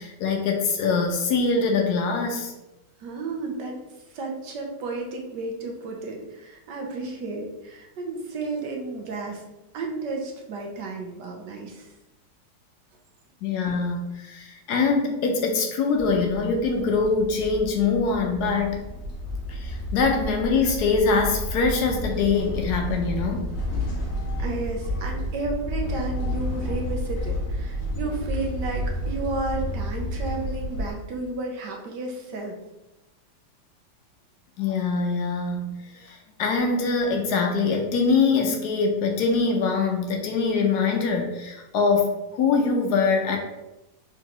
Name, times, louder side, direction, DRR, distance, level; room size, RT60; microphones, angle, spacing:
voice 1, 0.0-2.5 13.4-18.8 19.5-23.5 34.6-43.4, left 4 dB, 70° left, 2 dB, 1.0 m, -23 dB
voice 2, 3.0-3.8 4.1-9.4 9.7-11.9 24.4-32.6, right 3 dB, 70° right, 1 dB, 1.4 m, -32 dB
sound 1, 15.9-30.9, left 1 dB, 50° left, 1.2 m, -31 dB
4.5 x 3.7 x 2.9 m, 0.98 s
omnidirectional pair, 2.0 m